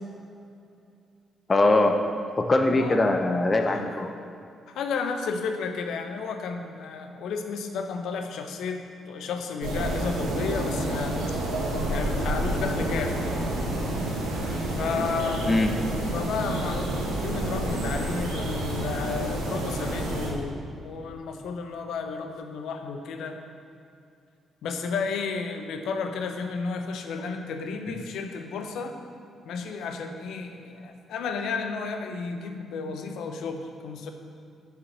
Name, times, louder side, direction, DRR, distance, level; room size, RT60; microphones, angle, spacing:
voice 1, 1.5-2.0 2.4-4.1 15.5-15.8 27.9-28.0, left 2 dB, 35° left, 5 dB, 1.0 m, -22 dB
voice 2, 2.7-3.0 3.6-3.9 4.7-11.4 11.9-13.2 14.8-15.5 16.1-23.4 24.6-29.0 29.4-34.1, left 5 dB, 70° left, 5 dB, 0.9 m, -32 dB
sound 1, 9.6-20.3, right 1 dB, 75° right, 1.8 m, -29 dB
7.0 x 7.0 x 7.9 m, 2.5 s
hypercardioid pair, 45°, 0 cm